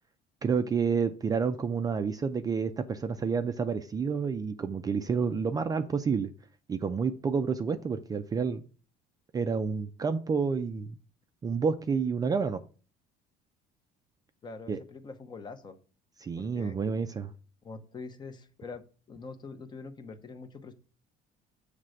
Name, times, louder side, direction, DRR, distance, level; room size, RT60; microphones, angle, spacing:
voice 1, 0.4-6.3 6.7-8.6 9.3-10.9 11.4-12.6 14.7-14.8 16.2-17.3, right 5 dB, 20° right, 0.4 m, -29 dB
voice 2, 14.4-15.8 16.4-16.8 17.6-18.8 19.1-20.7, left 4 dB, 25° left, 0.7 m, -44 dB
7.5 x 3.3 x 6.3 m
cardioid pair, 150°, 18 cm